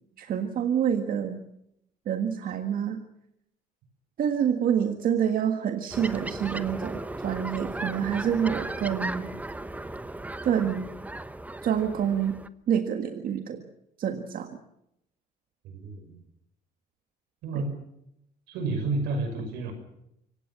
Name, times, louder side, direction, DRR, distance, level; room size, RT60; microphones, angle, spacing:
voice 1, 0.2-1.4 2.0-3.0 4.2-9.3 10.4-10.9 11.6-12.4 12.7-13.6 14.0-14.6 17.5-17.6, right 8 dB, 55° right, 6 dB, 1.7 m, -27 dB
sound 1, 5.9-12.5, right 2 dB, 10° right, 1.0 m, -36 dB
voice 2, 15.6-16.1 17.4-17.7 18.5-19.7, right 3 dB, 90° right, 7 dB, 6.3 m, -30 dB
25.0 x 17.5 x 7.4 m, 0.79 s
cardioid pair, 110°, 17 cm